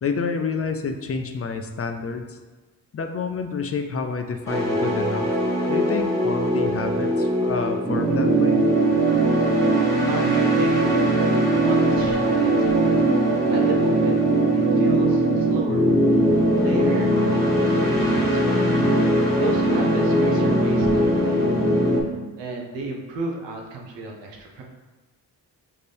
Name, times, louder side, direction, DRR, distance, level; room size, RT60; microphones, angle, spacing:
voice 1, 0.0-2.4 2.9-5.3 5.7-8.6, left 5 dB, 35° left, 6 dB, 0.5 m, -28 dB
sound 1, 4.5-22.0, right 1 dB, 5° left, 1.5 m, -20 dB
voice 2, 10.1-11.0 11.3-12.8 13.5-14.2 14.5-15.8 16.6-18.7 19.4-21.5 22.4-24.6, right 3 dB, 90° right, 0 dB, 0.9 m, -33 dB
5.7 x 2.6 x 3.4 m, 1.2 s
cardioid pair, 60°, 41 cm